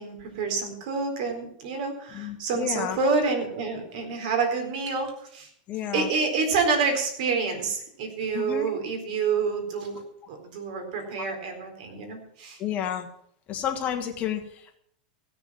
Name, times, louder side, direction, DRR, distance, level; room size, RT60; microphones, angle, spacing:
voice 1, 0.0-5.5 5.9-10.0 10.3-12.6, right 4 dB, 60° right, 4 dB, 4.1 m, -28 dB
voice 2, 2.1-3.0 5.7-6.1 8.3-8.7 12.6-13.1 13.5-14.8, left 9 dB, 30° left, 5 dB, 1.6 m, -31 dB
16.0 x 7.0 x 7.5 m, 0.68 s
supercardioid pair, 135°, 5 cm